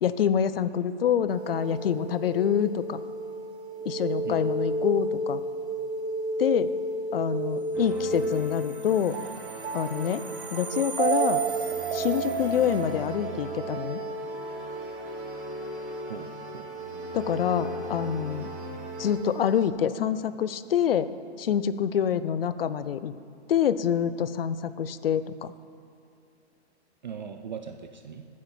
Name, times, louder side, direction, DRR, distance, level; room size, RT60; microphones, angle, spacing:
voice 1, 0.0-3.0 3.9-5.4 6.4-6.7 7.1-9.2 9.7-10.2 10.5-11.4 11.9-14.0 17.1-18.5 19.0-21.1 21.4-23.1 23.5-25.5, left 9 dB, 55° left, 14 dB, 0.6 m, -26 dB
sound 1, 1.3-19.7, right 3 dB, 70° right, 1.4 m, -32 dB
sound 2, 7.7-19.1, right 1 dB, 5° right, 0.7 m, -42 dB
voice 2, 16.1-16.7 27.0-28.3, right 7 dB, 45° right, 6 dB, 0.5 m, -39 dB
9.4 x 7.1 x 7.1 m, 2.6 s
hypercardioid pair, 175°, 34 cm